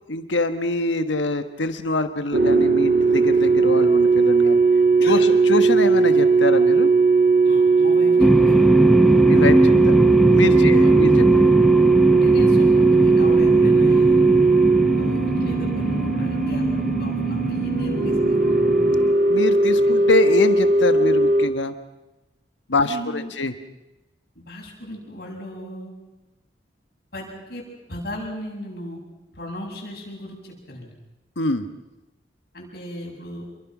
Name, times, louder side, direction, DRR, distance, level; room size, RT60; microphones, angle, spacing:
voice 1, 0.1-4.6 5.1-6.9 9.3-9.9 10.3-11.2 19.3-21.7 22.7-23.5 31.4-31.6, left 2 dB, 90° left, 9 dB, 1.4 m, -24 dB
sound 1, 2.3-21.5, right 4 dB, 55° right, 2.2 m, -18 dB
voice 2, 7.4-8.8 10.5-10.9 12.1-14.5 14.9-18.7 19.7-19.8 22.8-23.3 24.3-25.9 27.1-29.0 29.3-30.9 32.5-33.4, left 1 dB, 55° left, -2 dB, 7.9 m, -36 dB
sound 2, 8.2-19.1, equal, ahead, 0.7 m, -21 dB
28.5 x 23.0 x 6.1 m, 0.99 s
head